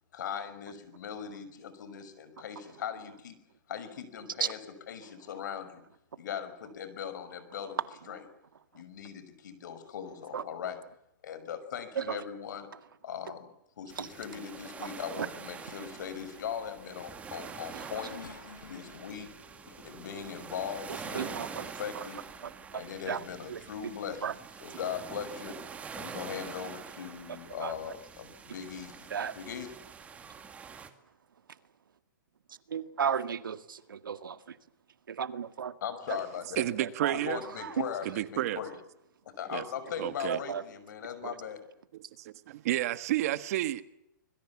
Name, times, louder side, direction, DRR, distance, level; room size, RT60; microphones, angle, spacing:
voice 1, 0.1-3.4 3.7-4.6 4.9-5.8 6.2-7.8 8.1-8.2 8.7-10.8 11.2-12.7 13.0-13.5 13.8-18.1 18.6-19.3 19.8-22.3 22.7-24.3 24.6-25.6 25.9-29.1 29.4-29.8 35.8-36.7 37.1-38.8 39.2-41.6, left 8 dB, 65° left, 5.8 m, -39 dB
sound 1, 13.9-30.9, right 6 dB, 10° right, 2.1 m, -46 dB
Race car auto racing / Accelerating revving vroom, 17.4-21.6 22.3-22.4 23.5-23.7, left 6 dB, 80° left, 4.8 m, -53 dB
voice 2, 17.4-17.9 20.9-22.0 22.4-23.2 23.5-23.9 24.2-24.3 27.6-27.7 29.1-29.3 32.7-33.6 34.1-34.6 35.1-35.7 36.8-37.2 37.6-37.8 40.3-40.6 41.2-41.4, right 7 dB, 90° right, 2.0 m, -34 dB
voice 3, 36.6-37.4 38.0-38.6 39.5-39.6 40.0-40.4 42.2-43.8, right 14 dB, 50° right, 1.6 m, -31 dB
26.0 x 22.0 x 7.4 m
hypercardioid pair, 150°, 11 cm